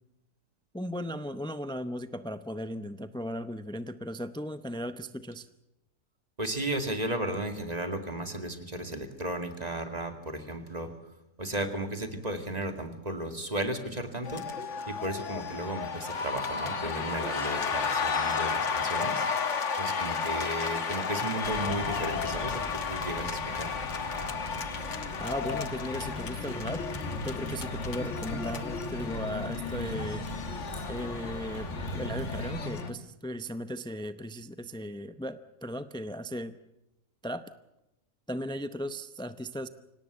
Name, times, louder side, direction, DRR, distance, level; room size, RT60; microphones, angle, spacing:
voice 1, 0.7-5.5 25.2-26.9 27.2-30.3 30.9-36.5 37.2-37.5 38.3-39.7, equal, 5° left, 11 dB, 0.3 m, -37 dB
voice 2, 6.4-10.9 11.4-14.4 14.9-19.3 19.8-23.8, right 1 dB, 25° right, 6 dB, 2.4 m, -34 dB
sound 1, 14.2-32.9, left 5 dB, 55° left, 1.6 m, -33 dB
sound 2, 21.4-32.6, left 1 dB, 30° left, 7.6 m, -40 dB
25.5 x 18.0 x 8.2 m, 0.94 s
omnidirectional pair, 1.5 m